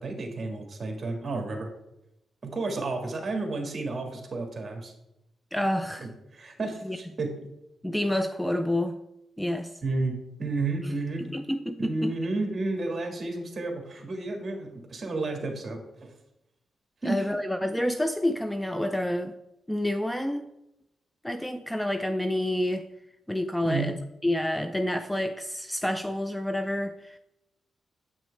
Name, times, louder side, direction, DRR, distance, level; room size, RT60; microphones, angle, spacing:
voice 1, 0.0-1.7 2.4-4.9 6.0-7.3 9.8-11.2 11.8-16.1 17.0-17.2 23.6-23.9, right 3 dB, 40° right, 3 dB, 1.7 m, -31 dB
voice 2, 5.5-6.1 6.8-7.0 7.8-9.0 9.4-9.8 11.3-12.1 17.0-19.3 19.7-20.5 21.2-22.9 23.3-24.0 24.2-27.2, left 1 dB, 5° left, 9 dB, 0.3 m, -28 dB
8.0 x 6.1 x 3.2 m, 0.88 s
cardioid pair, 90°, 0 cm